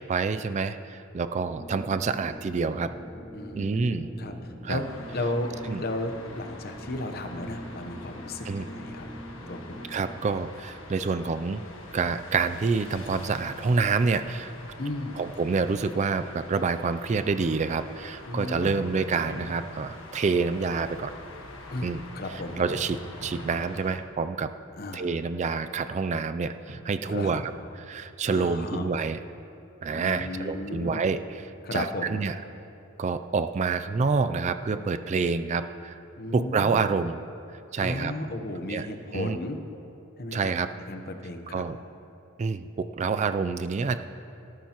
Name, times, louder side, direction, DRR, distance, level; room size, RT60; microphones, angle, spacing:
voice 1, 0.1-2.9 3.6-4.1 4.6-4.8 5.7-5.8 8.4-8.6 9.9-11.6 11.9-14.5 15.2-21.1 21.8-22.0 22.6-24.5 24.9-29.2 29.8-32.4 33.0-36.0 36.3-38.1 38.7-38.9 39.1-39.4 40.3-40.7 41.5-41.8 42.4-44.0, right 4 dB, 35° right, 10 dB, 0.3 m, -27 dB
sound 1, 1.4-10.2, equal, 5° left, 1.2 m, -43 dB
voice 2, 3.3-4.3 4.7-9.1 9.5-9.8 14.8-15.2 18.3-18.9 21.7-22.6 24.8-25.1 27.1-27.3 28.3-28.9 29.9-31.1 31.6-32.2 36.2-36.8 37.8-39.6 40.2-40.5 40.9-41.6, left 2 dB, 45° left, 6 dB, 0.9 m, -34 dB
sound 2, 4.7-24.0, left 2 dB, 75° left, 1.4 m, -45 dB
sound 3, 18.6-19.5 22.7-23.6 26.7-27.6 30.2-31.1, right 1 dB, 50° right, 1.5 m, -41 dB
18.0 x 13.0 x 3.0 m, 2.7 s
head